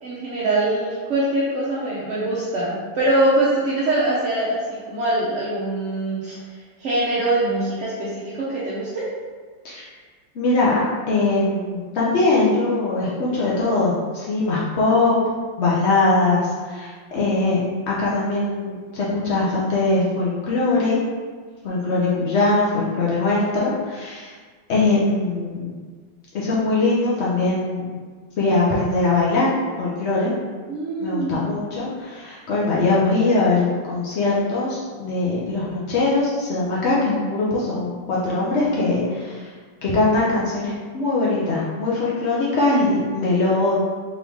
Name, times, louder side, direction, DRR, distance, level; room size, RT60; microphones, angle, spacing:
voice 1, 0.0-6.3 6.8-9.0 30.7-31.5, right 2 dB, 60° right, -9 dB, 0.8 m, -23 dB
voice 2, 10.4-10.8 11.1-15.2 15.6-21.0 21.6-24.3 24.7-25.7 26.3-28.0 28.4-30.3 31.0-39.4 39.8-43.7, left 2 dB, 75° left, -6 dB, 0.6 m, -21 dB
3.7 x 3.1 x 3.5 m, 1.5 s
omnidirectional pair, 2.0 m